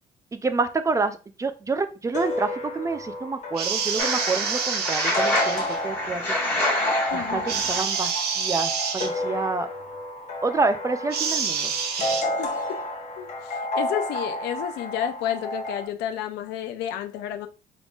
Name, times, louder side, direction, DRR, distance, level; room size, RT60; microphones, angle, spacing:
voice 1, 0.3-6.2 7.1-9.7 10.4-11.7, right 4 dB, 20° right, 0.4 m, -28 dB
sound 1, 2.1-15.9, left 1 dB, 45° left, 1.0 m, -31 dB
sound 2, 3.5-5.8 7.5-9.1 11.1-12.2, right 6 dB, 70° right, 0.8 m, -27 dB
sound 3, 4.0-7.8, left 1 dB, 10° left, 1.4 m, -27 dB
voice 2, 7.1-7.5 12.4-12.8 13.2-17.5, left 10 dB, 85° left, 0.5 m, -31 dB
3.7 x 3.5 x 2.4 m
cardioid pair, 110°, 17 cm